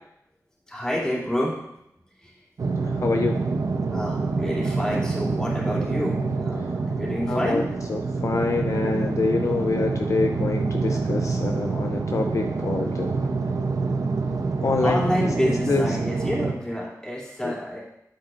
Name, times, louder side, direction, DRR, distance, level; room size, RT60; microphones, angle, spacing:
voice 1, 0.7-1.6 2.2-2.4 3.9-7.7 14.8-17.8, equal, 10° left, -6 dB, 2.7 m, -28 dB
sound 1, 2.6-16.5, right 4 dB, 60° right, 0.7 m, -26 dB
voice 2, 3.0-3.4 7.3-7.6 7.9-13.1 14.6-15.0 15.7-15.8 17.4-17.5, left 4 dB, 55° left, 4 dB, 0.5 m, -25 dB
8.6 x 8.3 x 2.5 m, 0.81 s
wide cardioid pair, 115°, 6 cm